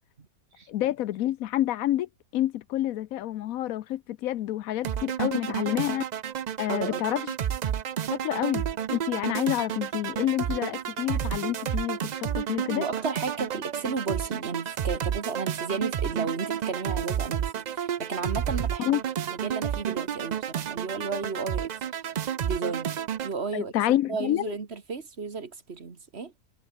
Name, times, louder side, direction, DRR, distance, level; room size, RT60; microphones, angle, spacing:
voice 1, 0.7-6.0 6.6-7.2 8.1-12.8 18.8-19.0 23.5-24.5, left 13 dB, 85° left, 1.1 m, -28 dB
sound 1, 4.8-23.3, right 9 dB, 85° right, 0.3 m, -31 dB
voice 2, 6.7-7.0 12.7-19.0 19.3-21.8 22.4-23.0 23.2-23.7 24.1-26.3, right 4 dB, 50° right, 1.9 m, -33 dB
omnidirectional pair, 1.4 m